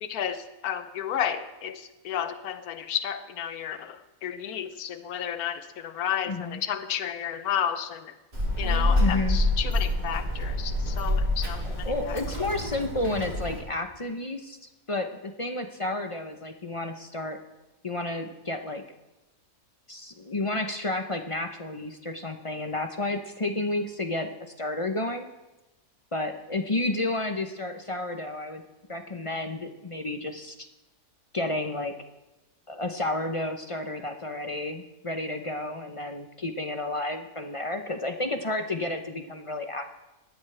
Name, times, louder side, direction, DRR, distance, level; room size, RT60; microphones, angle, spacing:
voice 1, 0.0-8.1 8.6-12.2, left 9 dB, 80° left, 10 dB, 1.3 m, -32 dB
voice 2, 6.2-6.6 9.0-9.4 11.6-14.6 14.9-17.4 17.8-18.8 19.9-24.3 24.6-25.3 26.1-28.6 28.9-30.5 31.3-31.9 32.7-39.9, left 2 dB, 30° left, 6 dB, 0.6 m, -31 dB
Child speech kid speaking, 8.3-13.6, left 1 dB, 35° right, 3.9 m, -27 dB
19.5 x 13.5 x 3.3 m, 1.0 s
omnidirectional pair, 1.6 m